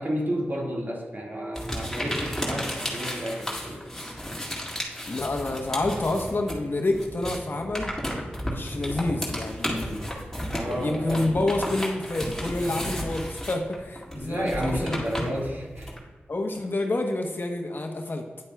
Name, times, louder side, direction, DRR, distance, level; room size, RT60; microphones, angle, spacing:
voice 1, 0.0-3.8 10.5-11.3 14.1-15.9, equal, 50° right, -2 dB, 1.8 m, -31 dB
sound 1, 1.6-6.6 6.9-16.0, equal, 10° left, 2.1 m, -33 dB
voice 2, 5.1-7.9 8.4-10.0 10.6-15.0 15.3-15.5 16.3-18.3, left 2 dB, 55° left, 3 dB, 1.0 m, -28 dB
9.7 x 8.4 x 2.3 m, 1.3 s
cardioid pair, 40°, 4 cm